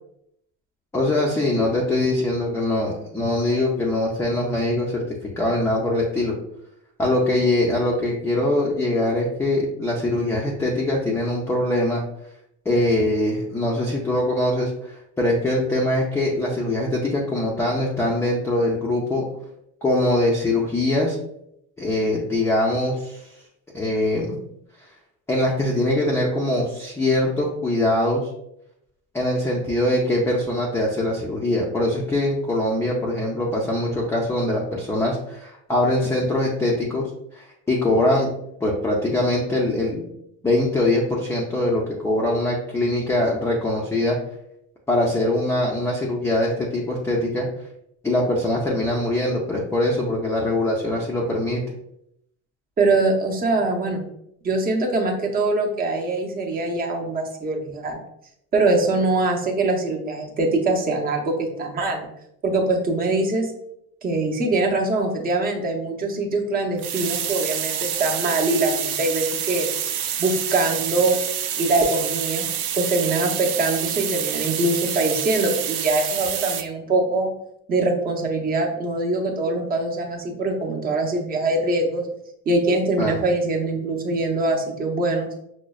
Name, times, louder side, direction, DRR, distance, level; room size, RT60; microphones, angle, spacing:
voice 1, 0.9-6.3 7.0-12.0 12.7-19.2 19.8-21.2 21.8-23.3 23.7-24.4 25.3-28.3 29.1-37.1 37.3-38.3 38.6-40.1 40.4-44.2 44.9-47.5 48.0-51.6 83.0-83.2, left 1 dB, 10° left, -3 dB, 0.4 m, -22 dB
voice 2, 52.8-54.0 54.4-58.0 58.5-62.0 62.4-63.5 64.0-69.7 70.2-71.2 71.6-72.5 72.7-77.3 77.7-82.1 82.5-85.3, right 2 dB, 25° right, 1 dB, 0.6 m, -23 dB
sound 1, 66.8-76.6, right 9 dB, 65° right, 0.5 m, -27 dB
6.0 x 2.1 x 2.3 m, 0.76 s
cardioid pair, 155°, 33 cm